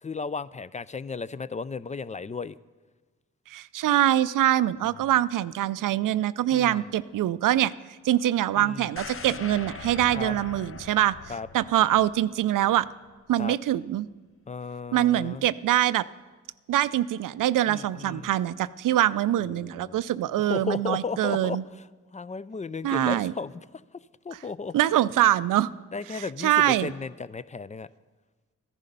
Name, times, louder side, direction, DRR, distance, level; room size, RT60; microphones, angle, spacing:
voice 1, 0.0-2.6 6.5-6.9 8.6-8.9 10.1-10.3 11.3-11.5 13.4-13.6 14.5-15.4 17.7-18.3 19.4-20.0 20.4-21.9 22.1-23.5 23.9-24.8 25.9-27.9, left 4 dB, 25° left, 18 dB, 0.4 m, -35 dB
voice 2, 3.5-7.7 8.0-11.2 11.5-12.9 13.3-14.1 14.9-16.0 16.7-21.6 22.8-23.3 24.7-25.7 26.1-26.9, right 13 dB, 75° right, 17 dB, 0.5 m, -24 dB
sound 1, 9.0-12.9 13.3-13.4, left 5 dB, 45° left, 0.8 m, -41 dB
14.0 x 11.0 x 5.3 m, 1.3 s
cardioid pair, 55°, 32 cm